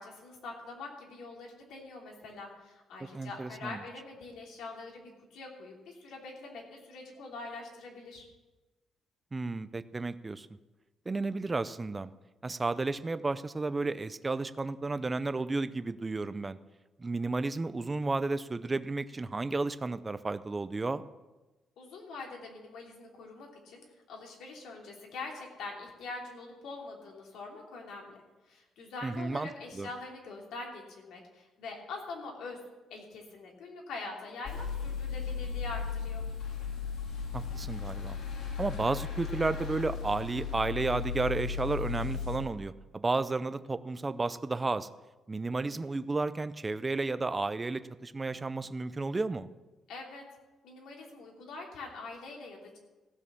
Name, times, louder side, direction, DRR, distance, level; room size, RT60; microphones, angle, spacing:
voice 1, 0.0-8.2 21.8-28.2 28.5-32.6 32.9-36.2 49.9-50.2 50.6-52.8, left 3 dB, 80° left, 0 dB, 3.0 m, -44 dB
voice 2, 3.1-3.8 9.3-10.5 11.1-12.1 12.4-16.6 17.0-21.0 29.0-29.5 29.7-29.9 37.3-38.2 38.6-44.9 45.3-49.5, right 3 dB, 15° right, 13 dB, 0.4 m, -32 dB
sound 1, 34.5-42.4, left 6 dB, 60° left, 2.3 m, -36 dB
15.5 x 6.4 x 7.1 m, 1.1 s
cardioid pair, 170°, 0 cm